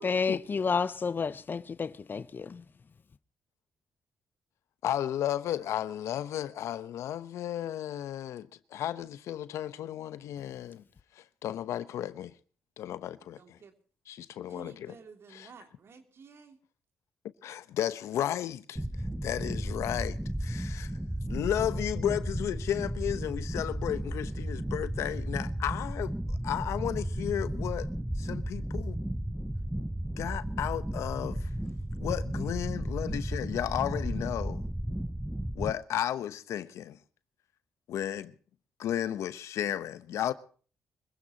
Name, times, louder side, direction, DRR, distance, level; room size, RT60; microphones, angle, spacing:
voice 1, 0.0-2.6, left 5 dB, 45° left, 0.8 m, -30 dB
voice 2, 4.8-10.8 11.1-12.3 12.8-13.4 14.1-14.9 17.4-18.8 19.2-20.9 21.3-27.9 28.2-29.0 30.2-31.5 32.0-34.6 35.5-37.0 37.9-38.3 38.8-40.3, left 11 dB, 85° left, 0.9 m, -33 dB
voice 3, 13.4-13.8 14.5-16.6, right 5 dB, 60° right, 3.0 m, -52 dB
sound 1, 18.8-35.7, right 1 dB, 5° right, 0.8 m, -34 dB
25.0 x 16.0 x 2.9 m
cardioid pair, 70°, 5 cm